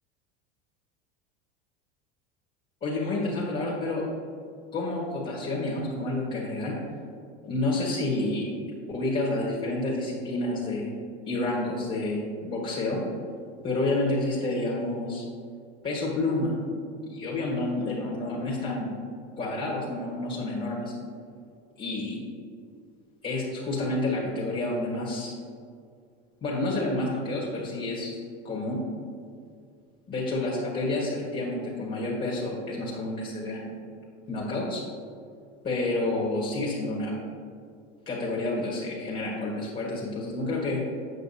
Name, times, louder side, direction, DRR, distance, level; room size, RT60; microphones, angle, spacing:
voice 1, 2.8-4.0 4.7-6.7 7.4-8.5 8.9-10.9 11.2-13.0 13.6-15.2 15.8-16.5 17.0-18.9 19.4-20.9 21.8-22.2 23.2-25.3 26.4-28.2 28.4-28.8 30.1-33.7 34.3-34.8 35.6-37.1 38.0-40.8, left 2 dB, 30° left, -4 dB, 1.6 m, -29 dB
8.0 x 5.8 x 2.8 m, 2.2 s
hypercardioid pair, 95°, 31 cm